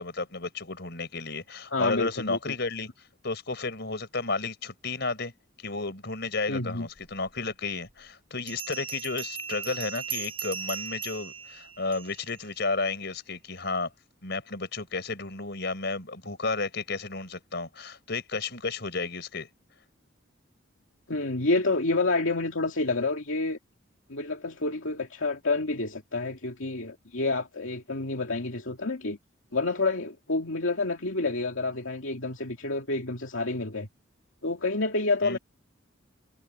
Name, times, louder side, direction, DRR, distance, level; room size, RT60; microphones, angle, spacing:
voice 1, 0.0-2.9 3.2-5.3 5.6-13.9 14.2-19.5 35.2-35.4, left 3 dB, 55° left, 5.1 m, -32 dB
voice 2, 1.7-2.4 6.5-6.9 21.1-23.6 24.1-29.2 29.5-33.9 34.4-35.4, left 3 dB, 80° left, 2.4 m, -28 dB
Bell, 8.5-12.4, right 7 dB, 25° right, 7.5 m, -37 dB
head